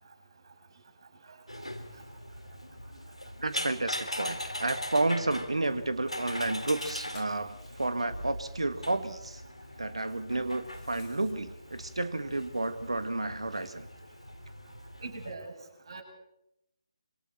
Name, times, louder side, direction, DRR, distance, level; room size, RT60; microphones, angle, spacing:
sound 1, 1.5-15.3, left 1 dB, 90° left, 3.4 m, -41 dB
voice 1, 3.4-9.4 9.8-13.9, right 2 dB, 70° right, 10 dB, 1.9 m, -31 dB
sound 2, 6.8-7.5 8.5-8.6 8.8-8.9 9.4-9.5 10.6-11.3, left 6 dB, 10° left, 3.0 m, -53 dB
voice 2, 15.0-15.5 15.9-16.0, right 3 dB, 55° right, 3 dB, 6.8 m, -41 dB
26.5 x 26.0 x 4.4 m, 0.83 s
figure-of-eight pair, 145°, 3 cm